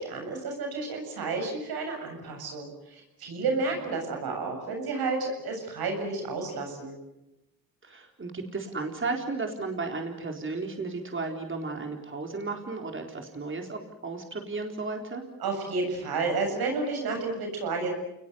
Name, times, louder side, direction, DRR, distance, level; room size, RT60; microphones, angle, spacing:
voice 1, 0.0-7.0 15.4-17.9, right 3 dB, 90° right, 3 dB, 7.6 m, -31 dB
voice 2, 7.8-15.3, right 3 dB, 35° right, 3 dB, 4.2 m, -34 dB
29.5 x 20.5 x 8.2 m, 0.90 s
cardioid pair, 80°, 36 cm